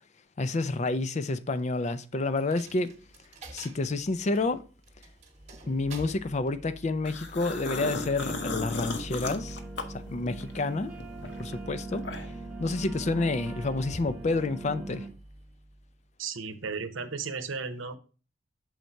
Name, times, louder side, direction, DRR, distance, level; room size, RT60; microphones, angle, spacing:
voice 1, 0.4-2.9 3.5-4.6 5.6-9.6 10.1-10.9 11.4-12.0 12.6-15.1, left 3 dB, 35° left, 0.4 m, -29 dB
Coin (dropping), 2.4-16.1, right 1 dB, 35° right, 1.1 m, -46 dB
sound 1, 7.0-10.6 11.0-12.5, left 3 dB, 60° left, 0.9 m, -35 dB
sound 2, 8.4-15.1, right 3 dB, 10° right, 1.0 m, -42 dB
voice 2, 16.2-18.0, right 5 dB, 85° right, 0.8 m, -34 dB
6.4 x 4.0 x 4.5 m
head